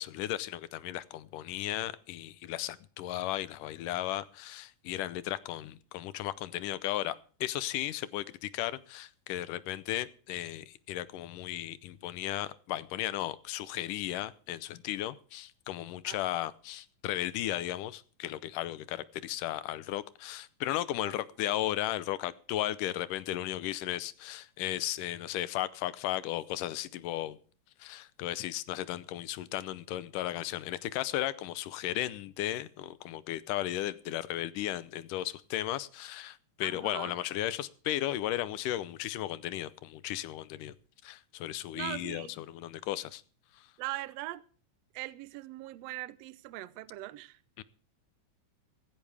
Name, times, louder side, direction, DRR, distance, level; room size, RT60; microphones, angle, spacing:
voice 1, 0.0-27.4 27.8-40.7 41.0-43.2 43.6-43.7 47.6-47.7, left 14 dB, 80° left, 2.3 m, -35 dB
voice 2, 36.6-37.1 41.7-42.3 43.8-44.4 44.9-47.4, right 17 dB, 75° right, 1.6 m, -40 dB
16.0 x 15.5 x 3.4 m
omnidirectional pair, 3.8 m